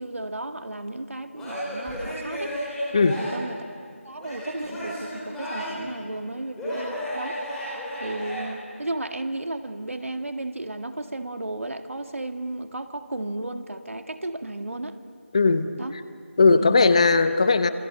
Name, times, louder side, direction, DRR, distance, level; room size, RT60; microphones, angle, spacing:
voice 1, 0.0-2.6 3.2-3.7 4.0-7.4 8.0-15.0 15.8-15.9 16.6-16.8, right 2 dB, 75° right, 7 dB, 2.0 m, -34 dB
Male speech man speaking / Yell / Laughter, 1.4-3.5 4.2-5.9 6.6-8.4, equal, 5° left, 5.3 m, -33 dB
voice 2, 15.3-15.7 16.4-17.7, left 4 dB, 25° left, 11 dB, 0.9 m, -18 dB
27.5 x 25.5 x 7.6 m, 2.4 s
figure-of-eight pair, 170°, 7 cm